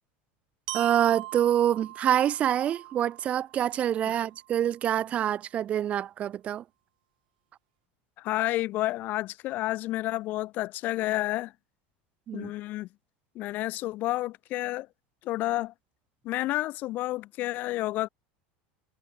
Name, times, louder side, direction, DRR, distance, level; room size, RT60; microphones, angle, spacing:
voice 1, 0.7-6.6 12.3-12.5, right 10 dB, 25° right, 1.3 m, -26 dB
Glockenspiel, 0.7-4.6, right 18 dB, 90° right, 2.7 m, -42 dB
voice 2, 8.2-11.5 12.3-12.9 13.3-14.9 15.2-15.7 16.2-18.1, left 17 dB, 40° left, 1.0 m, -30 dB
supercardioid pair, 165°, 5 cm